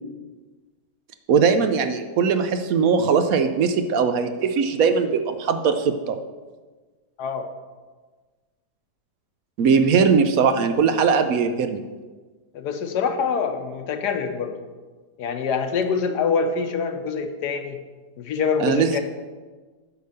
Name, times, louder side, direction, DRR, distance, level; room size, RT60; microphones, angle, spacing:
voice 1, 1.3-6.2 9.6-11.8 18.6-19.0, right 5 dB, 65° right, 8 dB, 1.0 m, -20 dB
voice 2, 12.5-14.6 15.2-17.8 18.2-19.0, left 5 dB, 90° left, 7 dB, 1.4 m, -25 dB
9.1 x 5.1 x 6.6 m, 1.3 s
omnidirectional pair, 1.7 m